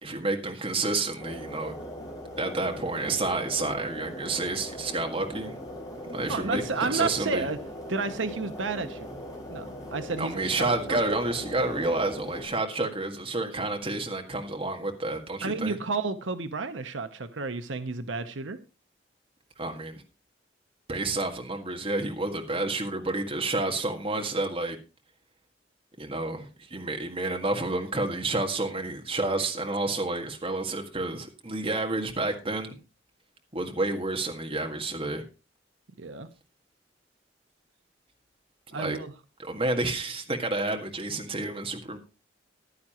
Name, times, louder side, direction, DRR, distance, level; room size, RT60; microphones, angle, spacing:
voice 1, 0.0-1.8 2.4-5.5 6.1-7.5 10.2-15.8 19.6-20.0 20.9-24.8 26.0-32.8 33.5-35.2 38.7-39.0 39.4-42.0, right 2 dB, 30° right, 3 dB, 1.8 m, -30 dB
sound 1, 1.2-12.5, equal, 20° left, 4.5 m, -40 dB
voice 2, 6.3-7.6 7.9-9.1 9.5-11.0 15.4-18.6 36.0-36.3 38.7-39.1, right 4 dB, 90° right, 9 dB, 0.9 m, -31 dB
15.0 x 11.0 x 3.0 m, 0.31 s
head